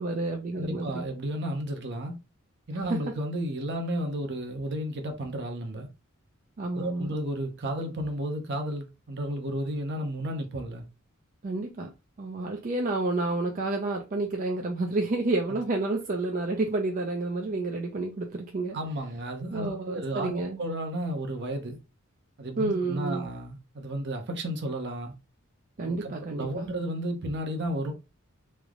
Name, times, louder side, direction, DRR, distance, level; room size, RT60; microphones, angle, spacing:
voice 1, 0.0-1.0 2.9-3.0 6.6-7.1 11.4-11.9 12.2-18.8 19.5-20.6 22.6-23.3 25.8-26.7, right 2 dB, 40° right, 0.4 m, -30 dB
voice 2, 0.5-2.2 2.7-5.9 6.7-10.8 15.5-15.6 18.7-21.8 22.4-25.1 25.8-27.9, right 1 dB, 55° right, 0.8 m, -33 dB
3.2 x 2.0 x 3.6 m
head